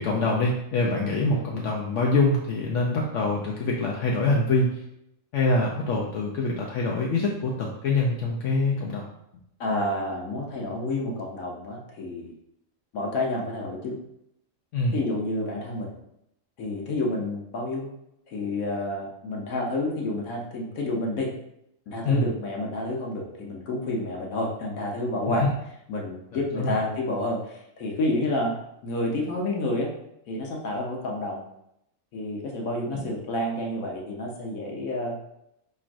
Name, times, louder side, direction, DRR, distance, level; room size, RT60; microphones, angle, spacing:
voice 1, 0.0-4.8 5.3-9.0 14.7-14.9 22.0-22.3 25.3-25.5 26.6-26.8 32.9-33.0, left 2 dB, 65° left, -2 dB, 0.9 m, -25 dB
voice 2, 9.6-12.3 12.9-14.0 14.9-15.9 16.6-17.9 18.3-21.3 21.9-25.5 25.9-28.5 28.8-29.9 30.3-31.4 32.1-35.2, left 1 dB, 85° left, -1 dB, 1.3 m, -29 dB
5.8 x 3.1 x 2.5 m, 0.79 s
omnidirectional pair, 1.4 m